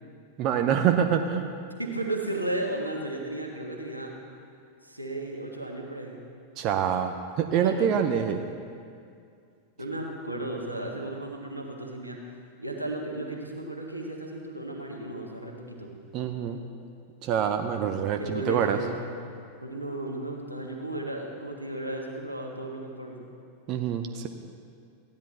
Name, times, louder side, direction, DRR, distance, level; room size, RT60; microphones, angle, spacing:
voice 1, 0.4-1.5 6.6-8.4 16.1-16.6 17.2-18.8 23.7-24.3, right 8 dB, 40° right, 6 dB, 0.6 m, -26 dB
voice 2, 1.8-4.1 4.8-6.2 7.5-7.9 8.2-8.4 9.8-15.9 18.2-19.2 19.6-23.3, right 1 dB, 85° right, 0 dB, 1.5 m, -34 dB
15.0 x 10.5 x 4.2 m, 2.3 s
figure-of-eight pair, 90°, 0 cm